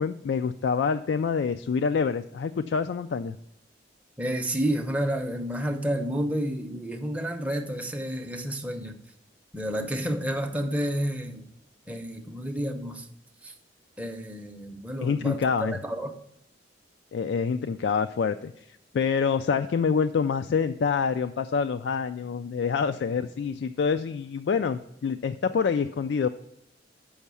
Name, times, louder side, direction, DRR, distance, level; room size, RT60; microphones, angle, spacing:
voice 1, 0.0-3.4 15.0-15.8 17.1-26.3, left 6 dB, 60° left, 9 dB, 0.3 m, -26 dB
voice 2, 4.2-9.0 9.5-11.4 11.9-13.1 13.4-13.5 14.0-16.1, equal, 5° right, 4 dB, 0.7 m, -30 dB
7.1 x 5.5 x 6.8 m, 0.78 s
head